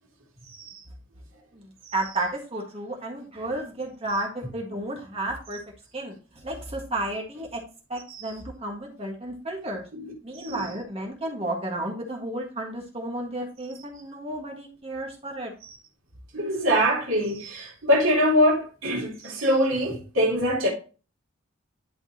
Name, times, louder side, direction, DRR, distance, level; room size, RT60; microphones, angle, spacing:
voice 1, 0.5-0.8 1.9-2.0 8.1-8.3 9.9-10.1 10.3-10.6 15.6-15.8 16.3-20.7, equal, 75° right, 2.4 m, -24 dB
voice 2, 1.5-7.6 7.9-9.8 10.2-15.5, right 1 dB, 30° right, 1.7 m, -32 dB
11.0 x 5.3 x 2.9 m
head